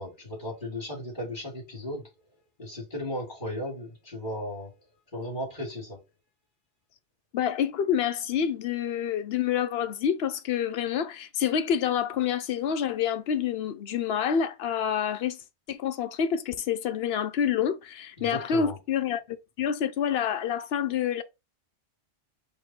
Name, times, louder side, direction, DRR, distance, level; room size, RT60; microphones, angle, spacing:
voice 1, 0.0-2.1 2.6-4.7 5.1-6.0 18.2-18.8, left 1 dB, 45° left, 2.6 m, -35 dB
voice 2, 7.3-15.4 15.7-21.2, left 8 dB, 65° left, 0.8 m, -28 dB
4.6 x 2.7 x 4.2 m
omnidirectional pair, 1.2 m